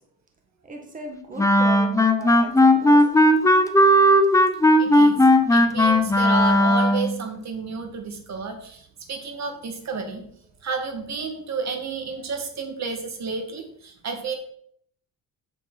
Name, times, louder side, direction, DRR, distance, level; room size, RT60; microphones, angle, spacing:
voice 1, 0.6-3.9 12.2-12.3, right 3 dB, 20° right, 2 dB, 1.5 m, -38 dB
Wind instrument woodwind instrument, 1.4-7.1, left 1 dB, 10° left, 0.6 m, -16 dB
voice 2, 4.8-5.2 5.5-10.2 10.6-14.3, right 4 dB, 45° right, 5 dB, 1.7 m, -31 dB
8.4 x 6.6 x 3.9 m, 0.64 s
cardioid pair, 120°, 38 cm